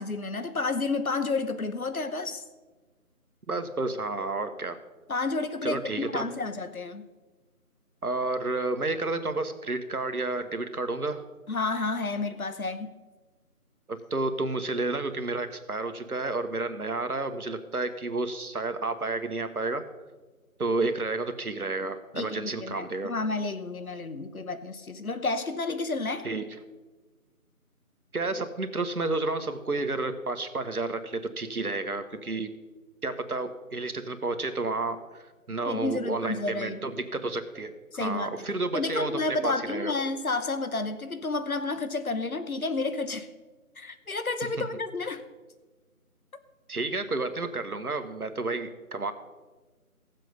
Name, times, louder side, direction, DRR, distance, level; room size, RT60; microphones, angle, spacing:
voice 1, 0.0-2.4 5.1-7.1 11.5-12.9 22.1-26.3 35.7-36.8 37.9-38.5 38.7-43.3 43.8-45.2, left 3 dB, 70° left, 11 dB, 1.1 m, -31 dB
voice 2, 3.5-4.8 5.6-6.3 8.0-11.2 13.9-19.8 20.6-23.1 26.2-26.4 28.1-32.5 33.0-35.0 35.5-39.9 46.7-49.1, right 3 dB, 75° right, 8 dB, 1.3 m, -31 dB
16.0 x 7.6 x 5.3 m, 1.3 s
figure-of-eight pair, 170°, 45 cm